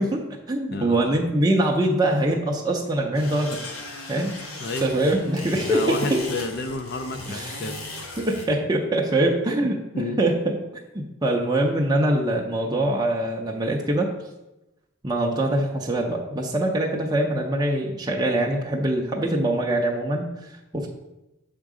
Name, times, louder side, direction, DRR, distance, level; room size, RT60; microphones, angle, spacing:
voice 1, 0.0-3.6 4.1-4.3 4.8-6.2 7.3-7.6 8.2-10.6 10.9-14.1 15.0-20.9, right 1 dB, 20° right, -1 dB, 0.5 m, -23 dB
voice 2, 0.7-1.2 4.6-4.9 5.6-7.8 9.9-10.2, left 3 dB, 45° left, 7 dB, 0.5 m, -31 dB
sound 1, 3.1-8.5, left 2 dB, 75° left, 1.3 m, -37 dB
7.2 x 3.7 x 4.9 m, 0.97 s
head